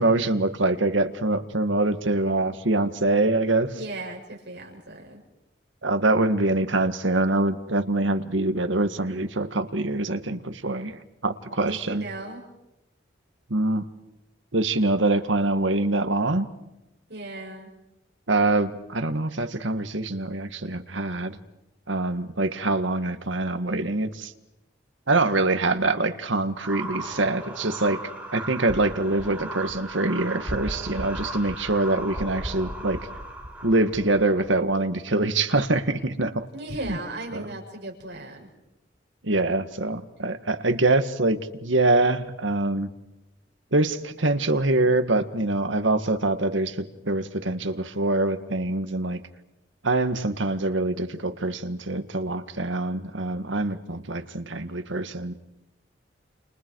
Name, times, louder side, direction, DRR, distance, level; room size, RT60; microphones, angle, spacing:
voice 1, 0.0-3.7 5.8-12.0 13.5-13.8 14.5-16.5 18.3-21.4 21.9-24.3 25.1-28.0 28.3-33.0 33.6-36.5 36.9-37.0 37.3-37.5 39.2-42.9 43.7-49.2 49.8-55.3, right 2 dB, 85° right, 9 dB, 1.8 m, -24 dB
voice 2, 3.7-5.2 11.7-12.4 17.1-17.7 36.5-38.5 53.6-54.1, right 2 dB, 65° right, 1 dB, 6.8 m, -37 dB
sound 1, 26.6-34.6, right 1 dB, 10° right, 4.2 m, -36 dB
30.0 x 29.5 x 4.8 m, 0.90 s
head